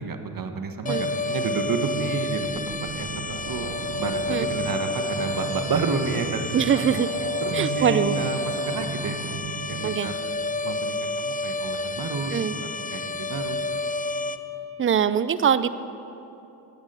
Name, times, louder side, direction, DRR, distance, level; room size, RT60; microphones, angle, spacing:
voice 1, 0.0-3.7 4.0-7.1 7.4-9.4 9.7-10.2 10.6-13.7, right 4 dB, 50° right, 7 dB, 1.2 m, -30 dB
sound 1, 0.9-14.4, left 2 dB, 20° left, 0.6 m, -30 dB
sound 2, 1.6-10.0, right 7 dB, 75° right, 0.8 m, -36 dB
voice 2, 6.5-7.1 7.5-8.2 9.8-10.1 12.3-12.5 14.8-15.7, right 8 dB, 30° right, 14 dB, 0.5 m, -22 dB
13.0 x 8.8 x 5.5 m, 2.9 s
supercardioid pair, 45°, 45 cm